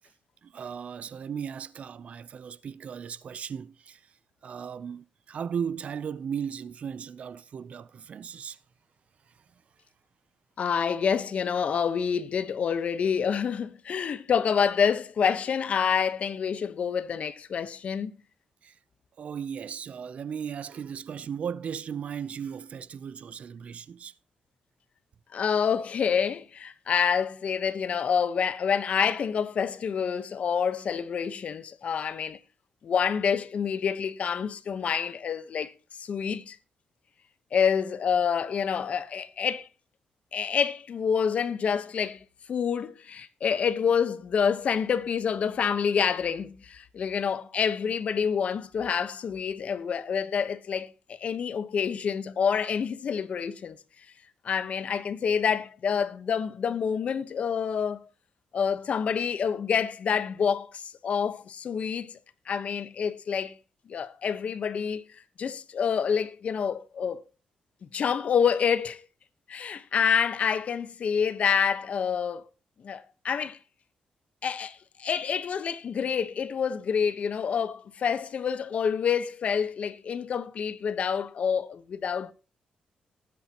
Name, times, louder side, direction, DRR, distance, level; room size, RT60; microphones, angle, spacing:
voice 1, 0.4-4.0 4.4-8.6 18.6-18.7 19.2-24.1, right 7 dB, 55° right, 0.5 m, -36 dB
voice 2, 10.6-18.1 25.3-32.4 32.8-35.7 36.0-36.6 37.5-39.7 40.3-53.8 54.4-58.1 58.5-62.1 62.5-63.5 63.9-65.0 65.4-67.2 67.9-69.1 69.5-72.4 72.8-73.6 74.4-82.3, left 7 dB, 55° left, 1.0 m, -27 dB
19.5 x 8.7 x 2.9 m
cardioid pair, 115°, 3 cm